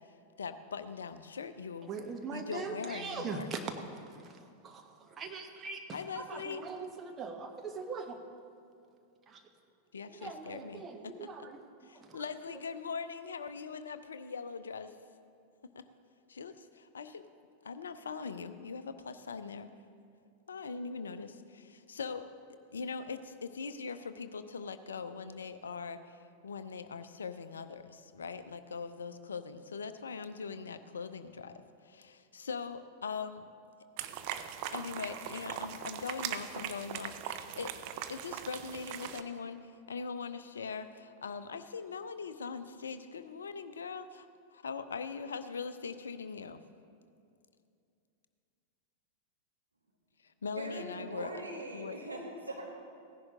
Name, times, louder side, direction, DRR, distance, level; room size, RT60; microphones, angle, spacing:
voice 1, 0.4-1.9 2.3-3.5 5.9-6.6 9.9-11.3 11.9-15.0 15.8-15.9 16.3-17.3 17.6-19.7 20.5-22.2 22.7-33.5 34.7-37.7 38.1-46.6 50.2-51.3 51.7-52.0, left 5 dB, 70° left, 11 dB, 0.5 m, -41 dB
voice 2, 1.8-8.2 9.3-9.4 10.1-12.2, right 4 dB, 25° right, 4 dB, 1.0 m, -42 dB
sound 1, 34.0-39.2, right 10 dB, 45° right, 0.6 m, -40 dB
voice 3, 50.5-52.7, right 2 dB, 80° right, 0 dB, 1.5 m, -41 dB
16.0 x 10.5 x 3.7 m, 2.5 s
figure-of-eight pair, 90°, 0 cm